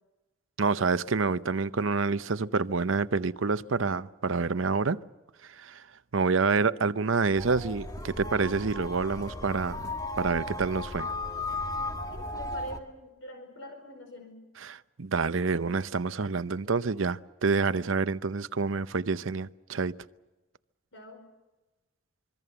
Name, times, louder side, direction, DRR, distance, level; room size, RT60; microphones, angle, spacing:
voice 1, 0.6-5.0 5.5-5.9 6.1-9.9 10.2-11.1 14.6-20.0, right 4 dB, 85° right, 0.8 m, -28 dB
sound 1, 7.4-12.8, left 2 dB, 20° left, 1.9 m, -35 dB
voice 2, 12.1-14.4 20.9-21.2, left 1 dB, 75° left, 5.0 m, -44 dB
25.5 x 23.5 x 6.9 m
head